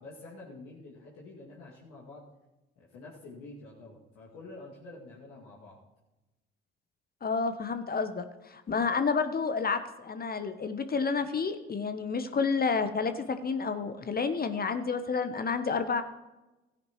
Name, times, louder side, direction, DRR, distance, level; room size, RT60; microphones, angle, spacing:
voice 1, 0.0-2.3 2.8-5.8, left 2 dB, 70° left, -5 dB, 2.3 m, -48 dB
voice 2, 7.2-16.0, left 5 dB, 30° left, 9 dB, 0.9 m, -30 dB
16.5 x 9.6 x 3.1 m, 1.1 s
hypercardioid pair, 50°, 29 cm